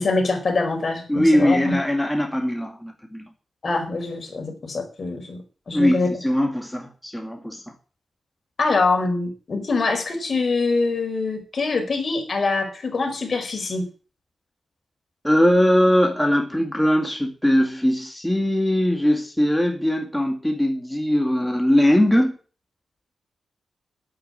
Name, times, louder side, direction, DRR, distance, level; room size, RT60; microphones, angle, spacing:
voice 1, 0.0-1.8 3.6-5.4 5.7-6.1 8.6-13.8, left 3 dB, 55° left, 4 dB, 4.6 m, -24 dB
voice 2, 1.1-3.2 5.7-7.7 15.2-22.4, equal, 5° left, 3 dB, 2.2 m, -20 dB
9.0 x 8.7 x 8.6 m, 0.39 s
cardioid pair, 75°, 0 cm